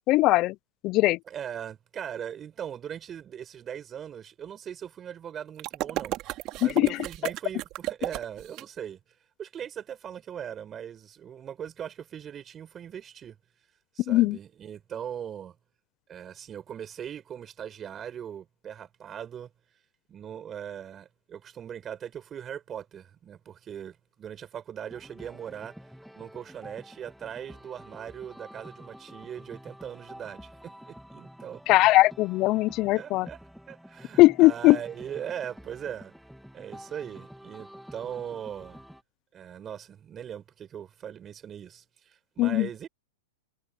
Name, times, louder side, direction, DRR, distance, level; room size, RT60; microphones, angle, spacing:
voice 1, 0.1-0.5 0.8-1.2 6.6-6.9 14.1-14.4 31.7-33.3 34.2-34.8 42.4-42.7, left 19 dB, 35° left, 0.6 m, -20 dB
voice 2, 1.3-9.0 9.4-13.4 13.9-15.6 16.1-19.5 20.1-31.6 32.9-33.4 33.7-36.1 36.5-38.8 39.3-42.9, right 9 dB, 25° right, 6.0 m, -40 dB
sound 1, 5.6-8.6, right 17 dB, 40° right, 2.6 m, -33 dB
sound 2, 24.9-39.0, equal, ahead, 2.5 m, -49 dB
hypercardioid pair, 135°, 0 cm